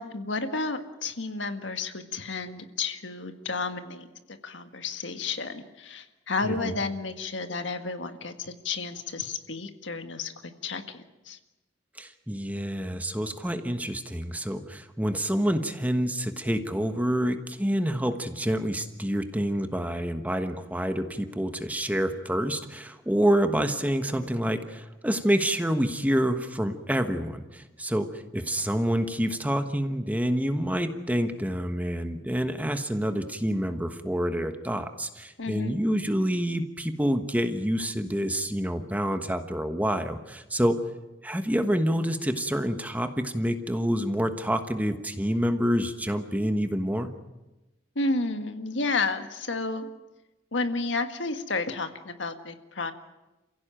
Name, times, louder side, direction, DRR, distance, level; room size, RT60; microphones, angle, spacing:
voice 1, 0.0-11.4 35.4-35.8 48.0-49.9 50.5-52.9, left 3 dB, 75° left, 7 dB, 1.8 m, -32 dB
voice 2, 6.4-6.8 12.0-40.8 41.2-47.1, equal, 10° right, 7 dB, 1.3 m, -27 dB
29.0 x 16.0 x 9.1 m, 1.0 s
head